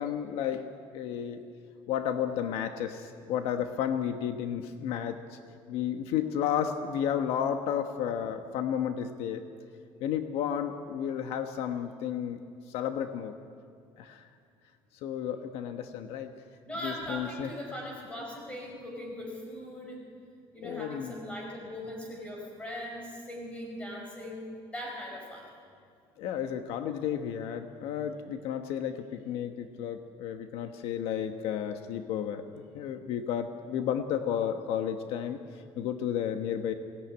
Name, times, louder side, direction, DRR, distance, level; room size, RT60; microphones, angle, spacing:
voice 1, 0.0-1.4 1.9-5.2 5.7-9.4 10.0-12.4 12.7-13.3 14.0-14.2 15.0-16.3 16.8-17.5 20.6-21.1 26.2-32.4 32.7-35.4 35.8-36.7, left 9 dB, 75° left, 7 dB, 1.2 m, -32 dB
voice 2, 16.6-20.0 20.5-24.5 24.7-25.5, equal, 10° left, 0 dB, 5.2 m, -40 dB
22.5 x 17.5 x 9.5 m, 2.2 s
cardioid pair, 180°, 10 cm